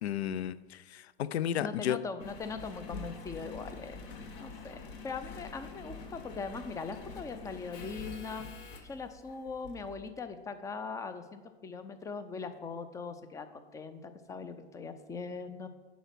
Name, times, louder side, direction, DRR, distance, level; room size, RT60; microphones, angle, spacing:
voice 1, 0.0-2.0, left 10 dB, 65° left, 18 dB, 0.5 m, -33 dB
voice 2, 1.6-4.0 4.4-8.5 8.8-15.7, left 4 dB, 10° left, 10 dB, 0.4 m, -41 dB
Engine, 2.2-10.1 10.7-10.8, left 4 dB, 50° left, 1.1 m, -46 dB
10.0 x 4.1 x 6.2 m, 1.3 s
figure-of-eight pair, 90°, 35 cm